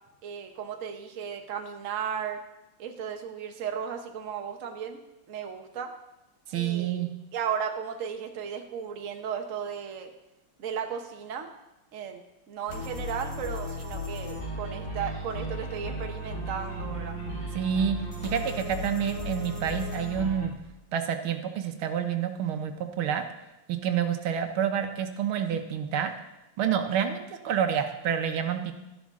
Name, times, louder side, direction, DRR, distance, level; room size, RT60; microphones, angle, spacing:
voice 1, 0.2-2.4 2.8-5.0 5.3-5.9 6.5-7.0 7.3-10.1 10.6-11.5 11.9-12.2 12.5-17.2, right 7 dB, 45° right, 4 dB, 1.2 m, -35 dB
voice 2, 6.5-7.1 17.6-20.5 20.9-23.2 23.7-26.1 26.6-28.7, right 8 dB, 80° right, 6 dB, 1.8 m, -28 dB
sound 1, 12.7-20.5, left 1 dB, 40° left, 3.1 m, -35 dB
13.0 x 11.5 x 3.7 m, 0.96 s
omnidirectional pair, 2.3 m